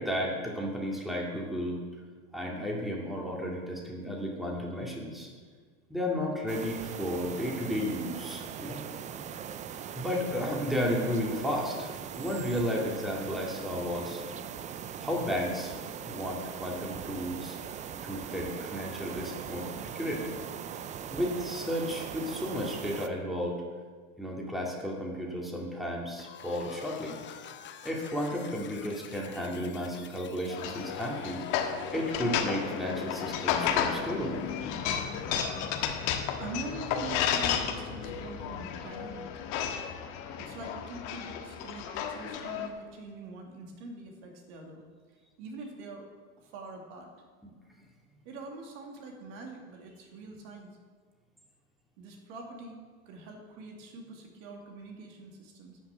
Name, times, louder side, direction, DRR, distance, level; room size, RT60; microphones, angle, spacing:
voice 1, 0.0-1.8 2.3-5.3 5.9-8.8 9.9-14.2 15.0-15.8 16.1-17.6 18.0-20.4 21.1-23.6 24.2-27.2 27.8-31.4 31.9-34.4, equal, ahead, -2 dB, 2.2 m, -33 dB
sound 1, 6.5-23.1, right 8 dB, 20° right, 0.4 m, -40 dB
sound 2, 26.2-42.8, left 7 dB, 25° left, 0.8 m, -44 dB
sound 3, 30.5-42.7, left 8 dB, 55° left, 1.5 m, -33 dB
voice 2, 36.4-39.3 40.4-44.8 45.1-46.1 46.4-47.1 48.2-50.7 52.0-52.8 53.1-55.8, right 3 dB, 60° right, 1 dB, 2.5 m, -44 dB
12.0 x 6.0 x 8.0 m, 1.6 s
hypercardioid pair, 100°, 43 cm